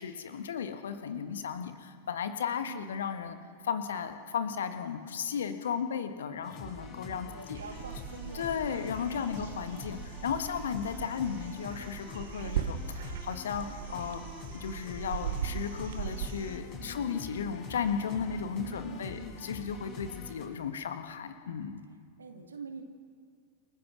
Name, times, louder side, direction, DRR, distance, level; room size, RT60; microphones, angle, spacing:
voice 1, 0.0-3.4 3.6-7.6 8.3-14.2 14.5-21.8, left 7 dB, 65° left, 8 dB, 1.5 m, -35 dB
voice 2, 2.6-3.0 7.3-9.5 16.7-17.1 18.6-19.5 22.2-22.8, right 3 dB, 75° right, 5 dB, 2.5 m, -46 dB
sound 1, 6.4-20.4, left 3 dB, 35° left, 5.4 m, -45 dB
sound 2, 7.5-16.6, right 9 dB, 55° right, 1.5 m, -39 dB
28.5 x 15.0 x 6.2 m, 2.2 s
figure-of-eight pair, 90°, 0 cm